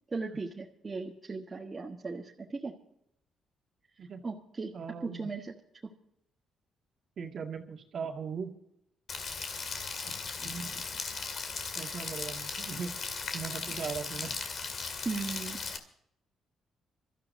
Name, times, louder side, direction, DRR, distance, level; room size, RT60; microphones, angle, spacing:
voice 1, 0.1-2.8 4.2-4.7 5.0-5.5 15.0-15.6, right 4 dB, 30° right, -1 dB, 1.4 m, -37 dB
voice 2, 4.7-5.3 7.2-8.5 10.0-10.8 11.8-12.9 13.3-14.4, right 6 dB, 55° right, 3 dB, 1.9 m, -39 dB
Rain, 9.1-15.8, left 4 dB, 55° left, 2.2 m, -37 dB
27.0 x 13.5 x 2.7 m, 0.74 s
cardioid pair, 90°, 0 cm